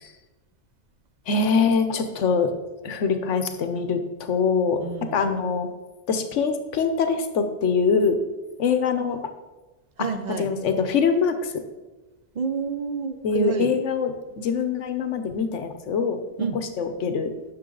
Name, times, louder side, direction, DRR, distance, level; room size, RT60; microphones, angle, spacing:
voice 1, 1.3-2.5 2.8-5.7 6.1-8.2 8.6-9.2 10.4-11.5 13.2-16.2 16.5-17.3, left 5 dB, 85° left, 8 dB, 1.1 m, -23 dB
voice 2, 4.8-5.3 10.0-10.5 12.3-13.7 16.4-16.6, right 5 dB, 45° right, 9 dB, 0.6 m, -29 dB
9.8 x 6.5 x 3.9 m, 1.2 s
omnidirectional pair, 1.2 m